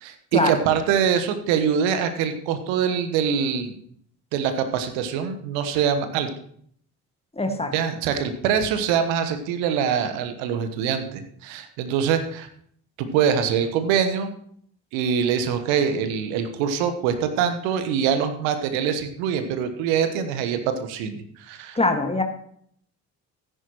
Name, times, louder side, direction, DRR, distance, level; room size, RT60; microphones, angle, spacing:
voice 1, 0.0-3.7 4.3-6.3 7.7-12.5 13.0-14.3 14.9-21.8, right 7 dB, 70° right, 8 dB, 1.2 m, -24 dB
voice 2, 7.4-7.7 21.8-22.2, left 2 dB, 10° left, 5 dB, 1.8 m, -22 dB
13.5 x 10.0 x 3.0 m, 0.63 s
figure-of-eight pair, 45°, 48 cm